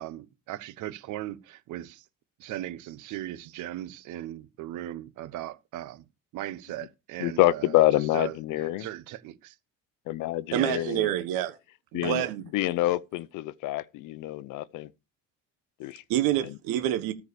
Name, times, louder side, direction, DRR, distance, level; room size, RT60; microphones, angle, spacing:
voice 1, 0.0-2.0 2.4-6.0 6.3-9.6 10.5-10.8 12.0-12.3, right 14 dB, 60° right, 1.0 m, -38 dB
voice 2, 7.2-8.9 10.1-11.1 11.9-12.2 12.5-14.9 15.8-16.0, left 16 dB, 65° left, 0.6 m, -26 dB
voice 3, 10.5-11.6 11.9-12.4 16.1-17.1, right 12 dB, 85° right, 1.3 m, -27 dB
14.0 x 4.7 x 6.8 m
cardioid pair, 165°, 34 cm